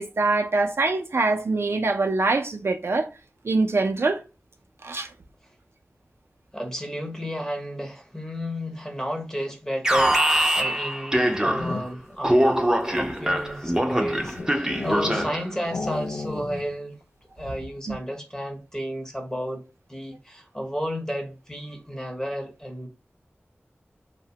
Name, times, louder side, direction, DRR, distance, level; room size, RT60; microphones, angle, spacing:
voice 1, 0.0-3.1 3.4-4.2 4.8-5.1 17.9-18.0, right 3 dB, 70° right, 0.4 m, -24 dB
voice 2, 6.5-12.6 13.0-17.0 17.4-19.6 19.9-22.9, equal, 15° left, 0.8 m, -32 dB
Alarm, 9.8-11.9 12.2-15.5, right 1 dB, 15° right, 0.5 m, -23 dB
sound 1, 11.2-12.2 12.8-15.4 15.7-16.7 17.0-17.1 17.4-17.8, left 3 dB, 85° left, 0.3 m, -34 dB
2.8 x 2.1 x 2.7 m
wide cardioid pair, 55°, 4 cm